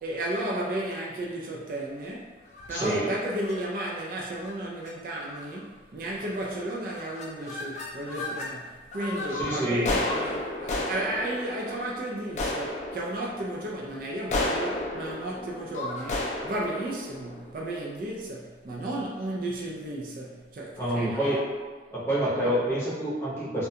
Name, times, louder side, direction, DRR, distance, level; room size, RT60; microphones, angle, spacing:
voice 1, 0.0-2.4 2.7-21.4, right 1 dB, 50° right, -2 dB, 0.3 m, -33 dB
sound 1, 2.5-2.8 3.4-3.6 4.3-4.5 4.8-4.9 5.3-5.7 6.2-6.6 6.8-8.5 8.9-18.1, left 2 dB, 40° left, 0.3 m, -33 dB
voice 2, 2.7-3.1 9.4-9.8 20.8-21.4 21.9-23.7, right 1 dB, 15° left, -9 dB, 0.7 m, -27 dB
2.4 x 2.2 x 2.7 m, 1.3 s
head